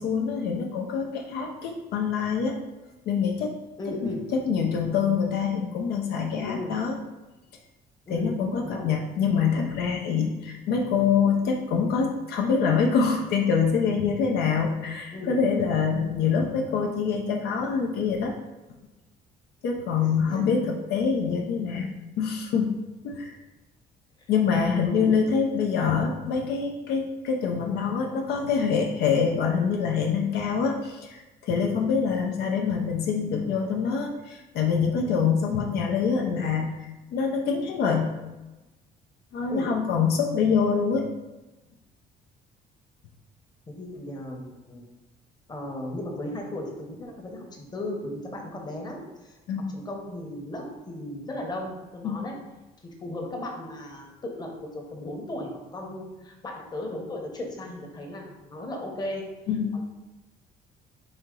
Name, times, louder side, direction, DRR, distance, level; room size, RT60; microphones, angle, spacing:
voice 1, 0.0-2.6 3.1-3.5 4.0-7.0 8.1-18.3 19.6-22.8 23.0-23.4 24.3-38.1 39.3-41.1 49.5-49.7 52.0-52.2 59.5-59.8, left 6 dB, 70° left, 1 dB, 0.6 m, -25 dB
voice 2, 3.8-4.2 6.3-6.8 8.1-8.8 15.1-15.4 20.0-20.5 24.8-25.2 39.5-39.7 43.7-44.8 45.5-49.4 49.7-52.4 52.8-59.2 59.7-59.8, left 1 dB, 25° left, 1 dB, 1.0 m, -36 dB
4.3 x 2.8 x 3.7 m, 1.1 s
cardioid pair, 110°, 17 cm